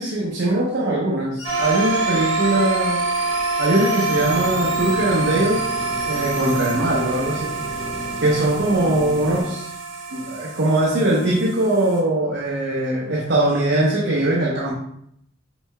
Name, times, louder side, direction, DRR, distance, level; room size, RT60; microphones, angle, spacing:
voice 1, 0.0-3.0 3.6-5.6 6.1-7.5 8.2-9.7 10.1-14.7, right 1 dB, 60° right, -4 dB, 0.8 m, -21 dB
sound 1, 1.4-6.8, left 4 dB, 55° left, 0.7 m, -36 dB
sound 2, 1.4-12.0, right 4 dB, 80° right, 1.1 m, -26 dB
sound 3, 4.1-9.4, equal, ahead, 1.1 m, -35 dB
6.0 x 3.7 x 2.2 m, 0.73 s
head